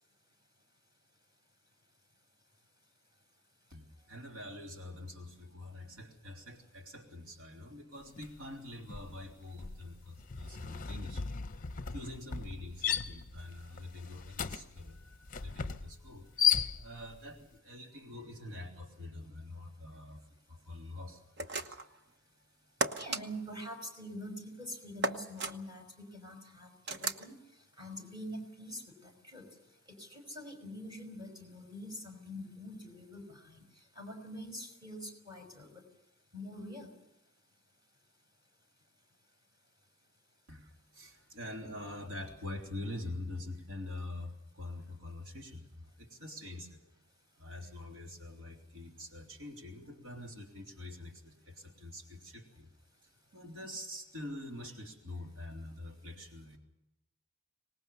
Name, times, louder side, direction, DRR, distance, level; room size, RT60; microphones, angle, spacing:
voice 1, 3.7-11.3 11.9-22.0 40.5-46.8 47.3-52.7 53.0-56.6, left 1 dB, 90° right, 2 dB, 3.3 m, -45 dB
sound 1, 8.2-8.4 8.7-17.2, left 8 dB, 35° left, 0.7 m, -35 dB
sound 2, 21.4-21.9 22.8-23.2 25.0-25.5 26.9-27.3, right 2 dB, 50° right, 1.1 m, -34 dB
voice 2, 23.0-25.9 26.1-27.4 27.8-29.4 30.0-33.6 34.0-35.8 36.3-36.9, equal, 20° right, 2 dB, 5.4 m, -45 dB
25.0 x 19.5 x 7.0 m, 0.88 s
head